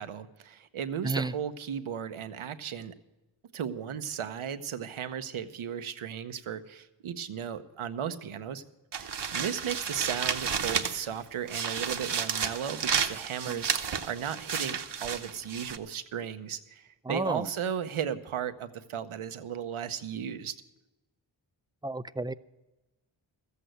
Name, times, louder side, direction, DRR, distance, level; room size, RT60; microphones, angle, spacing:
voice 1, 0.0-2.9 3.5-8.6 8.9-20.5, right 8 dB, 90° right, 0.9 m, -35 dB
sound 1, 8.9-11.1 11.5-15.8, right 6 dB, 60° right, 1.0 m, -32 dB
voice 2, 17.1-17.4 21.8-22.3, right 2 dB, 10° right, 0.4 m, -31 dB
14.0 x 8.3 x 7.8 m
cardioid pair, 60°, 48 cm